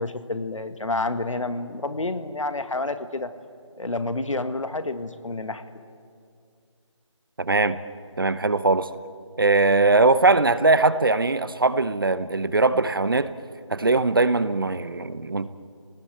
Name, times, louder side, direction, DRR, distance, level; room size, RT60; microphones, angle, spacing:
voice 1, 0.0-3.3 3.8-5.6, left 2 dB, 85° left, 9 dB, 1.8 m, -29 dB
voice 2, 7.4-7.8 8.2-8.9 9.4-13.3 13.7-15.5, right 3 dB, 45° right, 14 dB, 0.9 m, -20 dB
30.0 x 19.0 x 8.0 m, 2.3 s
figure-of-eight pair, 175°, 16 cm